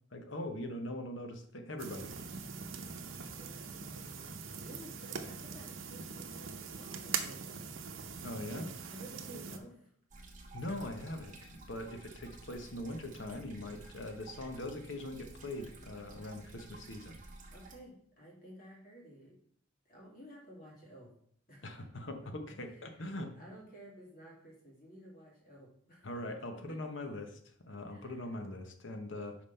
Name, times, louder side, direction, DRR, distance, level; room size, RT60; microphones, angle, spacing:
voice 1, 0.1-2.3 8.2-8.7 10.5-17.2 21.6-23.3 26.0-27.4 27.6-29.4, left 1 dB, 70° left, 6 dB, 1.0 m, -41 dB
sound 1, 1.8-9.6, right 6 dB, 75° right, 0.7 m, -42 dB
voice 2, 3.2-7.7 8.5-9.9 17.5-19.4 19.8-21.1 21.5-21.9 22.6-23.1 23.3-26.2 26.5-26.8 27.9-28.3, equal, 45° left, -3 dB, 2.7 m, -54 dB
sound 2, 10.1-17.7, right 2 dB, 40° right, 1.2 m, -53 dB
5.5 x 5.0 x 5.5 m, 0.64 s
head